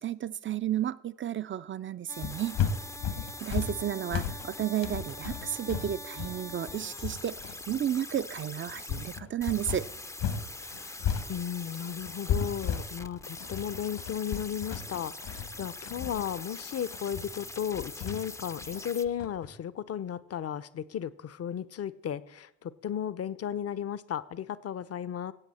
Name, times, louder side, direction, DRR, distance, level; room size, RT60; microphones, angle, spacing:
voice 1, 0.0-2.6 3.4-9.9, right 10 dB, 35° right, 16 dB, 0.6 m, -32 dB
sound 1, 2.1-19.0, left 2 dB, 10° left, 0.6 m, -43 dB
sound 2, 2.2-10.5 10.7-19.5, left 7 dB, 70° left, 1.6 m, -34 dB
voice 2, 10.6-25.3, left 9 dB, 45° left, 17 dB, 0.8 m, -35 dB
16.5 x 8.0 x 4.3 m, 0.89 s
hypercardioid pair, 45°, 35 cm